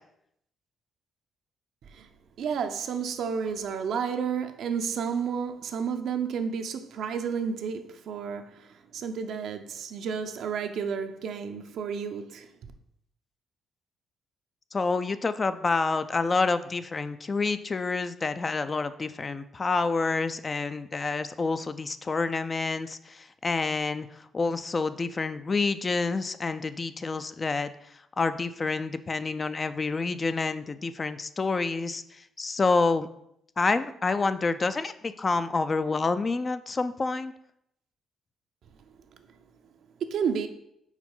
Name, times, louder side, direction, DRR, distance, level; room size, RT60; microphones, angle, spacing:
voice 1, 2.4-12.5 39.2-39.3 40.0-40.5, right 6 dB, 70° right, 0.6 m, -31 dB
voice 2, 14.7-33.1 33.6-37.3, left 3 dB, 30° left, 0.4 m, -28 dB
4.9 x 4.4 x 5.4 m
cardioid pair, 90°, 0 cm